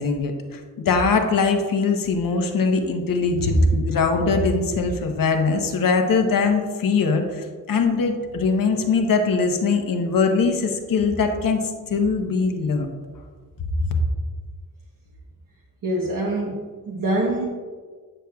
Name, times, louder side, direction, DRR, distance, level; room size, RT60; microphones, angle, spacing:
voice 1, 0.0-12.9, left 4 dB, 75° left, 4 dB, 0.9 m, -21 dB
voice 2, 15.8-17.4, right 1 dB, 75° right, -3 dB, 1.1 m, -25 dB
8.8 x 6.4 x 2.3 m, 1.5 s
wide cardioid pair, 155°, 34 cm